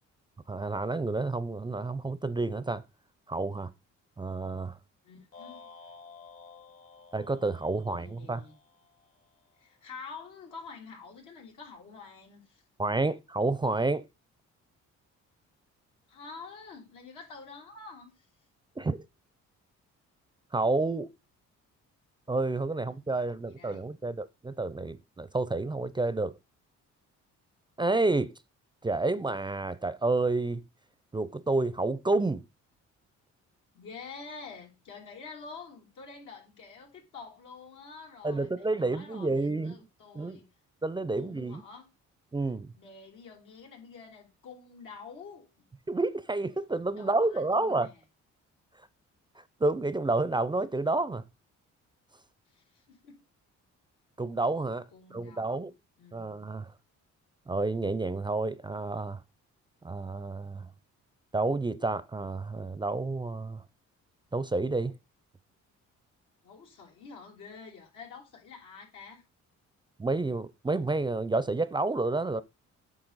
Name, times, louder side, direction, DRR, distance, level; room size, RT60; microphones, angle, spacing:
voice 1, 0.5-2.8 3.3-3.7 4.2-4.8 7.1-8.4 12.8-14.0 18.8-19.0 20.5-21.1 22.3-26.3 27.8-28.3 28.8-30.6 31.1-32.4 38.2-39.8 40.1-40.4 40.8-41.6 42.3-42.7 45.9-47.9 49.6-51.2 54.2-55.7 56.1-56.7 57.5-59.2 59.8-60.7 61.3-63.6 64.3-65.0 70.0-72.4, right 2 dB, 15° right, 0.4 m, -29 dB
voice 2, 5.0-5.7 7.9-8.6 9.6-12.6 16.1-18.1 22.7-23.8 33.7-40.5 41.1-41.9 42.4-45.7 47.0-47.9 52.5-53.2 54.9-55.7 56.0-56.4 66.4-69.2, left 5 dB, 85° left, 3.0 m, -48 dB
sound 1, 5.3-9.6, left 5 dB, 50° left, 1.1 m, -53 dB
8.8 x 5.6 x 4.0 m
cardioid pair, 90°, 30 cm